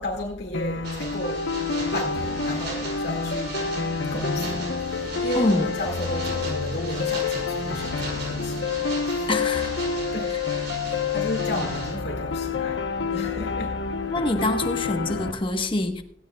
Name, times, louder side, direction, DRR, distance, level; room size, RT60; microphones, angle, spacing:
voice 1, 0.0-1.6 1.9-3.7 4.1-8.7 9.1-9.3 10.1-10.3 10.8-13.8 14.4-14.5, left 1 dB, 65° left, 2.0 m, -33 dB
sound 1, 0.5-15.3, left 5 dB, 85° left, 0.9 m, -28 dB
sound 2, 0.8-11.9, right 3 dB, 65° right, 5.7 m, -38 dB
voice 2, 5.3-5.7 9.3-9.9 14.1-16.0, left 2 dB, 30° left, 1.1 m, -25 dB
17.5 x 16.0 x 2.3 m
head